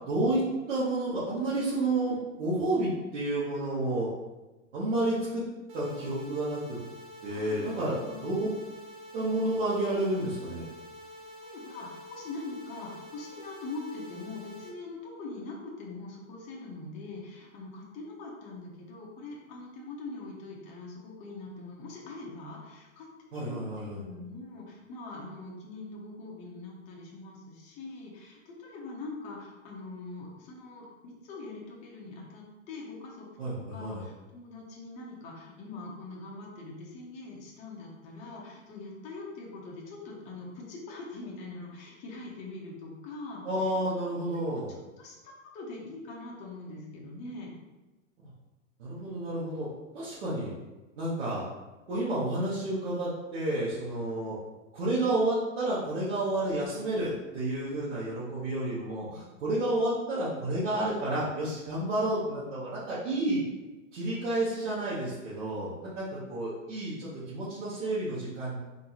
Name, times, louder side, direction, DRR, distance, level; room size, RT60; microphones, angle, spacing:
voice 1, 0.1-0.4 0.7-4.1 4.7-5.4 5.7-6.8 7.2-7.9 8.2-8.5 9.1-10.6 23.3-24.0 33.4-34.0 43.4-44.7 48.8-49.7 49.9-50.5 51.0-51.4 51.9-54.4 54.7-63.4 63.9-68.6, right 1 dB, 60° right, -10 dB, 1.4 m, -30 dB
sound 1, 5.7-14.7, left 1 dB, 40° right, 0.8 m, -48 dB
voice 2, 7.3-8.3 11.4-33.3 33.7-43.8 44.2-44.6 45.0-47.5, left 3 dB, 20° left, -3 dB, 0.6 m, -43 dB
3.7 x 2.6 x 2.9 m, 1.1 s
hypercardioid pair, 130°, 39 cm